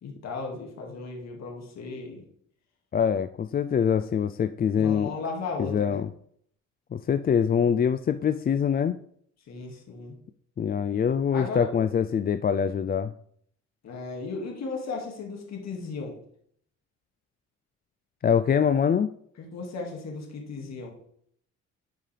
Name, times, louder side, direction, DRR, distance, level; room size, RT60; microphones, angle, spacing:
voice 1, 0.0-2.2 4.8-6.0 9.5-10.2 11.3-11.8 13.8-16.2 19.4-21.0, left 4 dB, 60° left, 1 dB, 2.1 m, -35 dB
voice 2, 2.9-5.1 5.6-6.1 6.9-9.0 10.6-13.1 18.2-19.1, left 7 dB, 30° left, 10 dB, 0.4 m, -24 dB
10.5 x 5.5 x 3.4 m, 0.65 s
cardioid pair, 90°, 30 cm